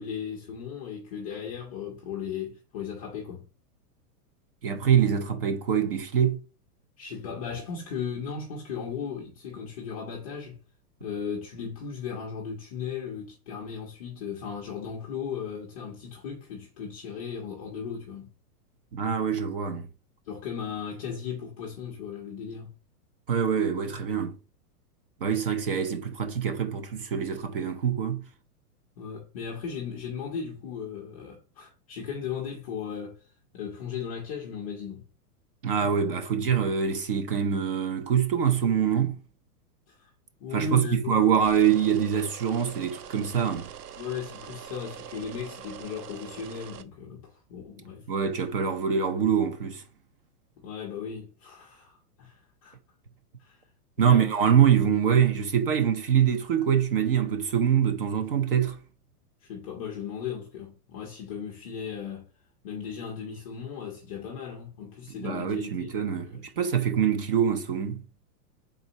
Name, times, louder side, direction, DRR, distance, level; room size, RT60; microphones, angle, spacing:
voice 1, 0.0-3.4 7.0-10.6 11.0-18.3 20.3-22.7 29.0-33.2 33.5-35.0 39.9-40.1 40.4-41.2 44.0-48.1 50.6-52.8 53.4-53.6 54.0-54.4 59.4-62.3 62.6-65.9 66.2-66.4, left 6 dB, 25° left, 0.5 m, -36 dB
voice 2, 4.6-6.4 18.9-19.9 23.3-24.4 25.2-28.2 35.6-39.2 40.5-43.7 48.1-49.8 54.0-58.8 65.2-68.0, right 8 dB, 40° right, 0.4 m, -24 dB
sound 1, 41.3-46.8, right 8 dB, 85° right, 0.7 m, -43 dB
4.0 x 3.7 x 2.7 m
supercardioid pair, 165°, 47 cm